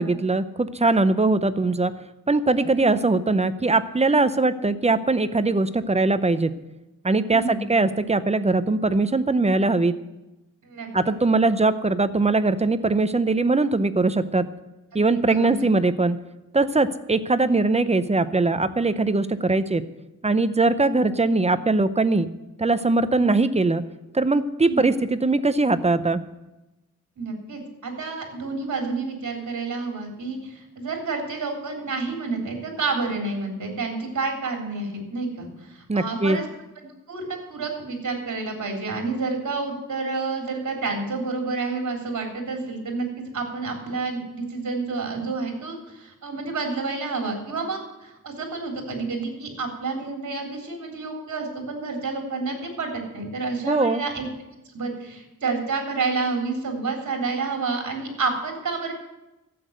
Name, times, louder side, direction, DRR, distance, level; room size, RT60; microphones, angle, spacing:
voice 1, 0.0-1.9 2.3-6.5 7.0-9.9 10.9-14.5 14.9-16.2 16.5-19.8 20.2-22.3 22.6-23.8 24.1-26.2 35.9-36.4 53.7-54.0, right 3 dB, 20° right, 12 dB, 0.6 m, -21 dB
voice 2, 7.3-7.7 10.6-11.1 14.9-15.6 24.7-24.8 27.2-36.5 37.1-43.1 43.3-54.3 54.7-58.9, right 4 dB, 55° right, 2 dB, 3.5 m, -29 dB
12.5 x 8.4 x 7.9 m, 1.0 s
wide cardioid pair, 140°, 34 cm